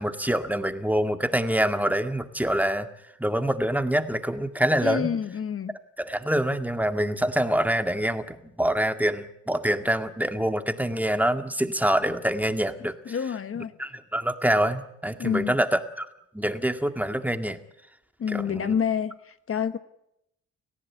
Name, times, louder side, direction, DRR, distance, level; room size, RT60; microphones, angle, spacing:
voice 1, 0.0-2.9 3.2-5.1 6.0-13.2 13.6-16.1 16.3-17.6 18.3-18.8, right 1 dB, 5° right, 7 dB, 2.0 m, -26 dB
voice 2, 4.8-5.8 13.1-13.7 15.2-15.5 18.2-19.8, left 7 dB, 45° left, 11 dB, 1.3 m, -28 dB
30.0 x 15.5 x 8.7 m, 0.80 s
cardioid pair, 90°, 30 cm